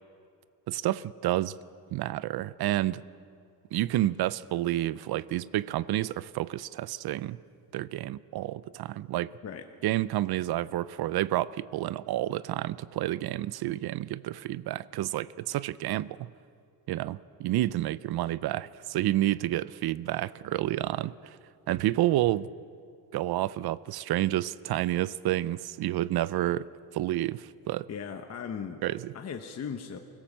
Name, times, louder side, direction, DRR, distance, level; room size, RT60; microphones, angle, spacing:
voice 1, 0.7-1.6 1.9-3.0 3.7-7.4 7.7-9.3 9.8-16.3 16.9-21.4 21.7-22.5 23.1-26.7 26.9-27.9 28.8-29.1, right 14 dB, 70° right, 0.5 m, -29 dB
voice 2, 27.9-28.8 29.1-30.0, left 7 dB, 40° left, 1.0 m, -37 dB
24.5 x 16.5 x 7.3 m
cardioid pair, 150°, 39 cm